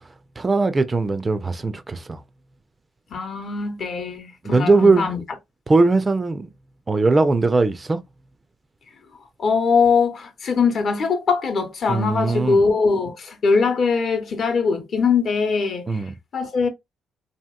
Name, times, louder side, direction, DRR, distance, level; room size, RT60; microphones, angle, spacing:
voice 1, 0.4-2.2 4.4-5.1 5.7-6.5 6.9-8.0 11.9-12.6 15.9-16.1, right 3 dB, 25° right, 0.3 m, -19 dB
voice 2, 3.1-5.2 9.4-16.0 16.3-16.7, left 5 dB, 55° left, 0.8 m, -21 dB
2.8 x 2.8 x 2.3 m
cardioid pair, 90°, 0 cm